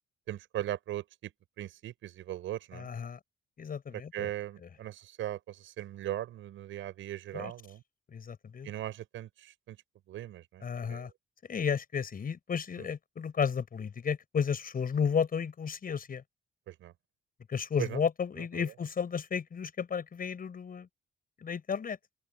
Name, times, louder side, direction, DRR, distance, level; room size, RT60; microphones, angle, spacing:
voice 1, 0.3-1.3 1.6-2.9 4.1-7.8 8.6-9.8 10.1-10.6 10.9-11.1 12.8-12.9 16.7-16.9 17.8-18.0, right 13 dB, 80° right, 6.7 m, -39 dB
voice 2, 2.7-3.2 3.6-4.3 4.6-4.7 7.3-7.5 8.1-8.7 10.6-11.1 11.5-16.2 17.5-20.9 21.4-22.0, left 6 dB, 45° left, 5.9 m, -33 dB
open air
cardioid pair, 90°, 20 cm